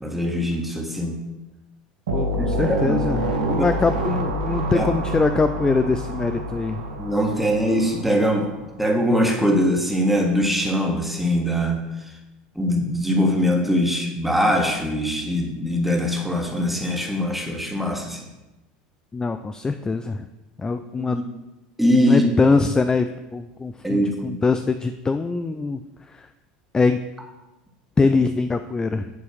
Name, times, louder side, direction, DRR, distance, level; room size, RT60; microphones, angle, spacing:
voice 1, 0.0-1.2 2.4-3.6 4.7-4.9 7.0-8.5 8.8-12.1 12.5-18.2 21.1-21.2 21.8-22.2 23.8-24.4, equal, 5° right, 1 dB, 1.5 m, -22 dB
voice 2, 2.1-6.8 19.1-20.3 20.6-21.2 22.0-23.1 23.3-25.8 26.1-26.3 26.7-27.0 28.0-29.1, left 4 dB, 15° left, 8 dB, 0.4 m, -23 dB
sound 1, 2.1-8.5, right 1 dB, 85° right, 1.0 m, -27 dB
8.6 x 3.1 x 6.2 m, 1.0 s
hypercardioid pair, 85°, 4 cm